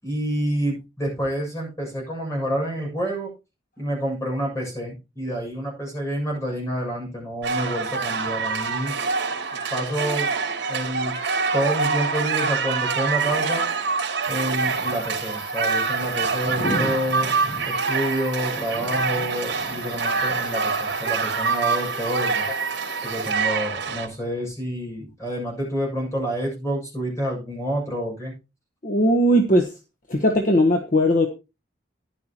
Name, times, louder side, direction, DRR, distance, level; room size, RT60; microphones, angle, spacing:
voice 1, 0.0-3.3 3.8-8.9 9.7-10.3 10.7-11.2 11.5-13.7 14.3-17.3 17.7-22.5 23.0-28.3, equal, 15° left, -2 dB, 7.0 m, -28 dB
sound 1, 7.4-24.1, right 5 dB, 75° right, 2.9 m, -25 dB
sound 2, 14.2-23.3, left 1 dB, 75° left, 5.7 m, -38 dB
voice 2, 28.8-29.7 30.1-31.3, equal, 45° left, 4 dB, 1.1 m, -18 dB
13.5 x 10.5 x 3.0 m, 0.28 s
head